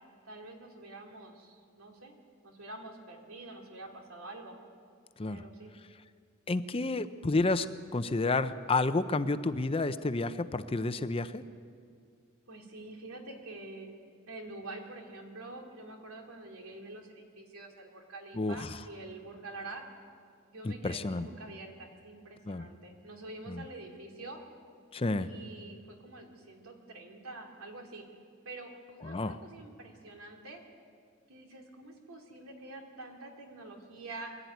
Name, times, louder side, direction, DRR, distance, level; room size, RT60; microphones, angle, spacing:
voice 1, 0.2-2.2 2.4-4.6 5.2-5.7 12.5-14.0 14.3-19.8 20.5-24.4 25.2-28.0 28.4-30.6 31.3-34.4, right 2 dB, 90° right, 2 dB, 2.8 m, -46 dB
voice 2, 6.5-7.7 7.9-11.4 18.3-18.7 20.6-21.3 22.5-22.7 23.5-23.6 24.9-25.3 29.0-29.4, left 3 dB, 25° left, 12 dB, 0.6 m, -30 dB
23.0 x 12.5 x 9.3 m, 2.2 s
head